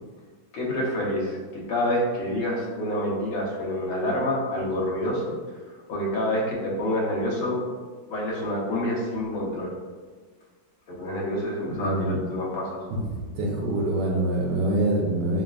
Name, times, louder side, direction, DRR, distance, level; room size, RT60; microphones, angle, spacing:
voice 1, 0.5-5.4 5.9-7.7 8.1-9.7 10.9-12.8, left 1 dB, 85° left, -4 dB, 1.7 m, -27 dB
voice 2, 11.6-12.2 12.9-15.4, right 1 dB, 70° right, -2 dB, 1.3 m, -25 dB
5.8 x 2.4 x 2.3 m, 1.5 s
omnidirectional pair, 2.2 m